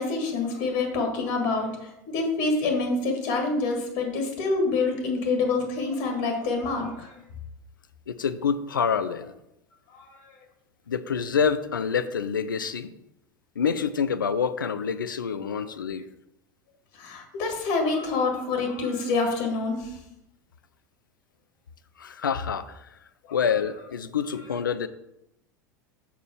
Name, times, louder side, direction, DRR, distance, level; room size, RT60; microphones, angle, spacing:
voice 1, 0.0-7.1 9.9-10.3 17.0-19.9 23.3-23.4, left 3 dB, 50° left, 3 dB, 1.6 m, -27 dB
voice 2, 8.1-9.3 10.9-12.9 13.6-16.1 22.0-23.0 23.3-24.9, left 6 dB, 80° left, 13 dB, 0.5 m, -27 dB
6.9 x 4.4 x 4.7 m, 0.86 s
figure-of-eight pair, 80°, 11 cm